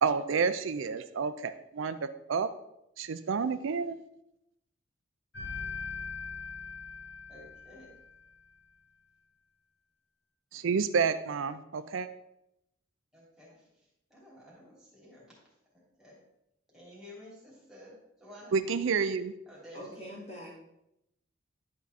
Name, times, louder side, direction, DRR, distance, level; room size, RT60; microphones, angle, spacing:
voice 1, 0.0-2.5 3.0-4.0 10.5-12.1 18.5-19.3, right 5 dB, 75° right, 11 dB, 0.4 m, -29 dB
sound 1, 5.3-8.2, left 5 dB, 65° left, 2.1 m, -41 dB
voice 2, 7.3-7.9 13.1-15.2 15.7-16.2 16.7-18.5 19.5-20.0, left 1 dB, ahead, -7 dB, 3.0 m, -52 dB
voice 3, 19.7-20.6, equal, 30° left, -5 dB, 2.6 m, -44 dB
11.0 x 4.7 x 4.1 m, 0.83 s
head